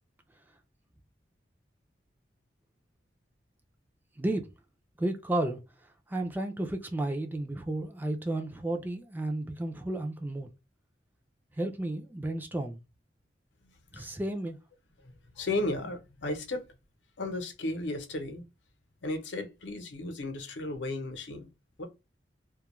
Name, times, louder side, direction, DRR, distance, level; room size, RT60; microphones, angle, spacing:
voice 1, 5.0-5.6 6.1-10.5 11.6-12.8 13.9-14.6, right 1 dB, 10° right, 0.4 m, -32 dB
voice 2, 13.6-14.2 15.0-16.6 17.2-18.4 19.0-21.5 21.8-21.9, left 2 dB, 85° left, 0.7 m, -35 dB
2.3 x 2.1 x 2.9 m
head